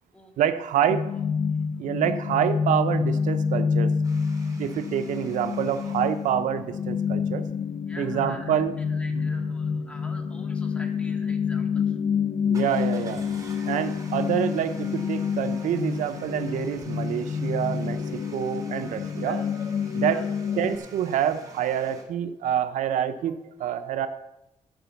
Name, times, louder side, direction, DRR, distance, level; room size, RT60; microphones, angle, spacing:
voice 1, 0.4-1.1 1.8-3.9 4.6-7.4 8.0-8.7 9.1-9.2 12.5-13.2 13.7-19.4 19.9-20.2 20.6-24.1, right 9 dB, 85° right, 10 dB, 0.7 m, -27 dB
sound 1, 0.9-20.8, left 6 dB, 70° left, 0.7 m, -28 dB
sound 2, 4.0-6.3 12.5-22.0, right 3 dB, 30° right, 2.6 m, -47 dB
voice 2, 7.9-8.6 8.9-12.0 19.3-19.5 20.1-20.3, left 1 dB, 10° left, 2 dB, 1.9 m, -46 dB
13.0 x 5.2 x 7.0 m, 0.91 s
cardioid pair, 115°, 13 cm